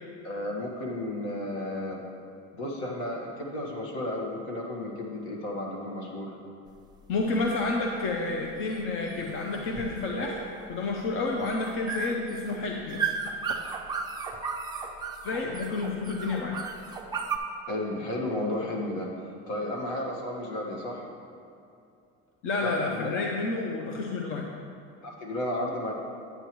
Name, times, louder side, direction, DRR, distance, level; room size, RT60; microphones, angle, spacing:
voice 1, 0.2-2.0 2.5-6.3 17.7-21.1 22.8-23.3 25.0-25.9, left 1 dB, 65° left, -2 dB, 1.7 m, -33 dB
sound 1, 6.7-17.4, right 5 dB, 15° right, 0.4 m, -35 dB
voice 2, 7.1-13.0 13.4-13.6 15.2-16.6 22.4-24.5, left 3 dB, 45° left, 0 dB, 0.6 m, -30 dB
9.9 x 9.0 x 3.1 m, 2.6 s
cardioid pair, 165°, 30 cm